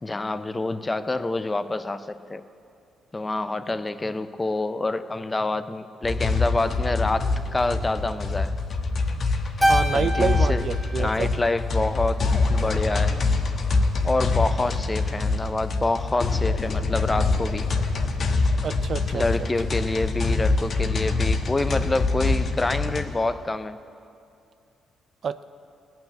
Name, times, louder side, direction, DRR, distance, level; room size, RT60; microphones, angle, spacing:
voice 1, 0.0-2.4 3.1-8.5 9.9-10.6 11.0-13.2 14.0-17.7 19.1-23.8, left 2 dB, 20° left, 12 dB, 0.5 m, -27 dB
sound 1, 6.0-23.1, left 3 dB, 50° left, 1.1 m, -25 dB
Keyboard (musical), 9.6-12.1, equal, ahead, 1.5 m, -27 dB
voice 2, 9.6-11.3 18.6-19.5 25.2-25.4, right 6 dB, 50° right, 13 dB, 0.4 m, -28 dB
18.0 x 6.1 x 8.6 m, 2.6 s
cardioid pair, 90°, 0 cm